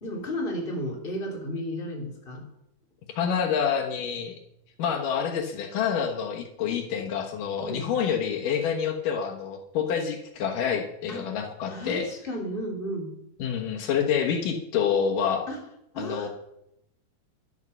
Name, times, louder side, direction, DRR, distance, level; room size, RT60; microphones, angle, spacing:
voice 1, 0.0-2.4 7.6-7.9 11.1-11.3 11.7-13.1 15.5-15.6 15.9-16.3, equal, 15° left, 1 dB, 3.0 m, -33 dB
voice 2, 3.2-4.3 4.8-12.1 13.4-15.5 16.0-16.3, left 7 dB, 75° left, 3 dB, 2.8 m, -27 dB
12.5 x 11.0 x 6.8 m, 0.82 s
omnidirectional pair, 4.0 m